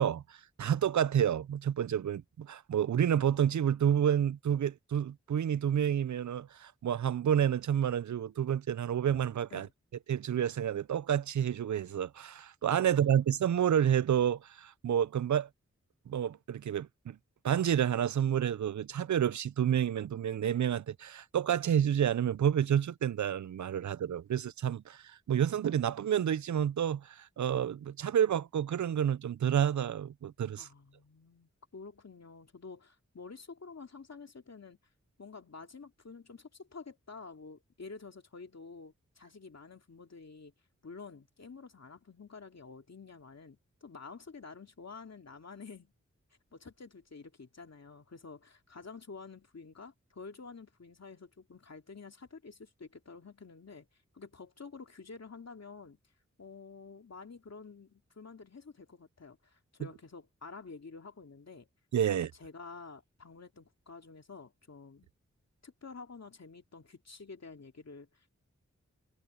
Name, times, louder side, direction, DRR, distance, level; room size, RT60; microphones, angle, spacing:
voice 1, 0.0-9.7 10.1-15.5 16.1-17.2 17.4-30.7 61.9-62.3, right 9 dB, 75° right, 0.5 m, -29 dB
voice 2, 30.6-34.8 35.2-40.5 40.8-45.9 46.5-53.9 54.1-56.0 56.4-61.7 62.1-65.1 65.6-68.3, left 4 dB, 60° left, 2.5 m, -49 dB
wide cardioid pair, 75°, 29 cm